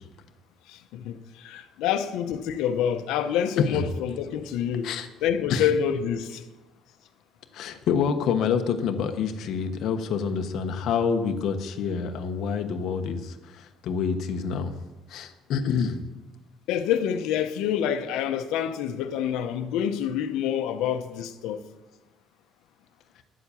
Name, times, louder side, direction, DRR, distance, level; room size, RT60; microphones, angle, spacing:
voice 1, 0.7-4.9 5.2-6.4 16.7-21.6, left 9 dB, 85° left, 0.9 m, -27 dB
voice 2, 7.5-14.7 15.1-16.0, left 6 dB, 55° left, 1.1 m, -27 dB
11.0 x 7.7 x 7.0 m
cardioid pair, 160°, 0 cm